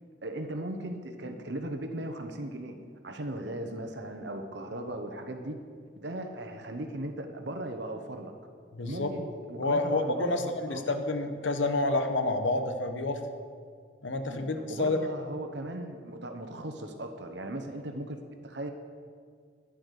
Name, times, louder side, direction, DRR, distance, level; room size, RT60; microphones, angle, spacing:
voice 1, 0.2-2.8 3.0-5.6 6.0-8.3 8.8-10.8 14.3-18.2 18.4-18.7, right 1 dB, 70° right, 6 dB, 1.0 m, -38 dB
voice 2, 8.7-9.1 9.6-13.2 14.0-15.0, left 2 dB, 90° left, 7 dB, 1.0 m, -29 dB
10.5 x 10.5 x 6.5 m, 2.1 s
head